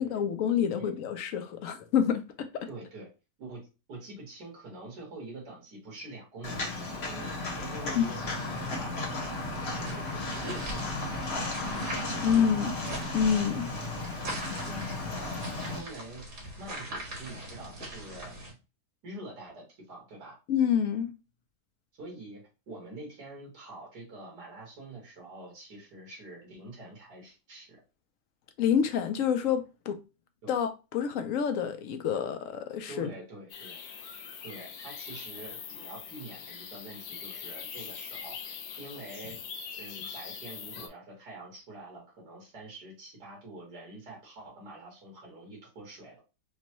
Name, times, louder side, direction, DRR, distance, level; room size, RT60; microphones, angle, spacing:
voice 1, 0.0-2.2 2.5-2.7 7.9-8.1 12.2-12.7 13.1-13.7 20.5-21.1 28.6-30.0 30.5-33.1, left 8 dB, 70° left, 0.8 m, -27 dB
voice 2, 2.7-3.1 3.4-12.5 14.0-14.2 14.7-14.8 15.1-15.4 15.7-16.2 16.6-18.4 19.0-20.4 22.0-27.8 30.4-30.6 32.9-33.8 34.4-39.4 39.7-46.2, right 2 dB, 80° right, 2.4 m, -46 dB
Walk footsteps, 6.4-15.8, left 2 dB, 45° left, 1.1 m, -35 dB
sound 1, 8.4-18.5, right 1 dB, 45° right, 1.7 m, -42 dB
sound 2, 33.5-40.9, left 7 dB, 85° left, 1.3 m, -42 dB
5.2 x 2.2 x 2.9 m
omnidirectional pair, 1.8 m